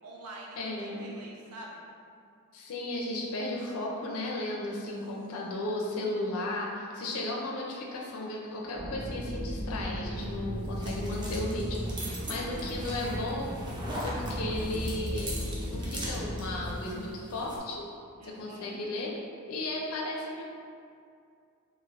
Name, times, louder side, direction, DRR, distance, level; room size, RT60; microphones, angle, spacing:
voice 1, 0.0-1.8 5.5-5.6 12.1-13.2 18.2-18.8, right 2 dB, 85° right, -3 dB, 0.5 m, -47 dB
voice 2, 0.6-1.1 2.5-13.5 14.0-15.4 15.7-17.9 18.2-19.1 19.5-20.4, left 2 dB, 65° left, -3 dB, 0.4 m, -35 dB
sound 1, 8.7-16.8, equal, 45° right, 1.2 m, -36 dB
sound 2, 10.1-17.6, right 1 dB, 20° right, 0.4 m, -41 dB
3.2 x 2.4 x 2.4 m, 2.4 s
head